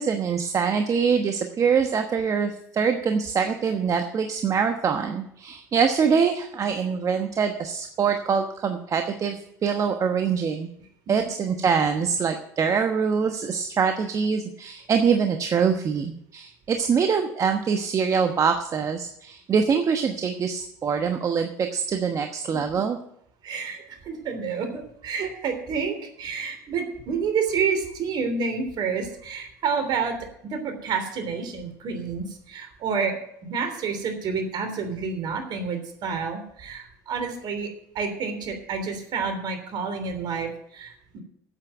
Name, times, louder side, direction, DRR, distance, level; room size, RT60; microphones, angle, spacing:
voice 1, 0.0-10.7 11.1-23.0, right 6 dB, 40° right, 6 dB, 1.2 m, -24 dB
voice 2, 23.4-30.2 30.5-37.7 38.0-41.2, right 5 dB, 55° right, 6 dB, 3.3 m, -29 dB
8.8 x 8.4 x 9.1 m, 0.74 s
hypercardioid pair, 75°, 9 cm